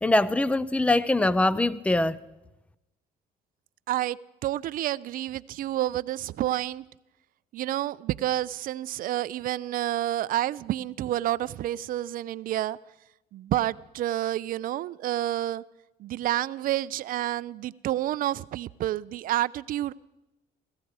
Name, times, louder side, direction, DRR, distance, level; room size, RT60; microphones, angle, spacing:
voice 1, 0.0-2.2, left 2 dB, 5° left, 0.4 m, -23 dB
voice 2, 3.9-4.2 4.4-6.8 7.5-12.8 13.3-15.6 16.0-19.9, right 13 dB, 55° right, 0.4 m, -29 dB
16.5 x 14.5 x 4.7 m
cardioid pair, 110°, 17 cm